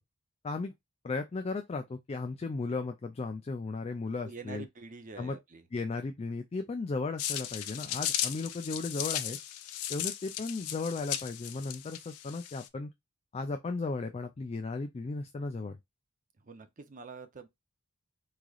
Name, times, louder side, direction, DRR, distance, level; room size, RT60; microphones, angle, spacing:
voice 1, 1.0-4.6 5.2-5.4 5.7-9.4 9.9-12.9 13.3-15.8, left 3 dB, 30° left, 0.3 m, -35 dB
voice 2, 4.2-5.6 16.4-17.5, right 4 dB, 35° right, 0.6 m, -46 dB
sound 1, 7.2-12.7, left 11 dB, 90° left, 0.5 m, -36 dB
3.6 x 3.2 x 2.3 m
head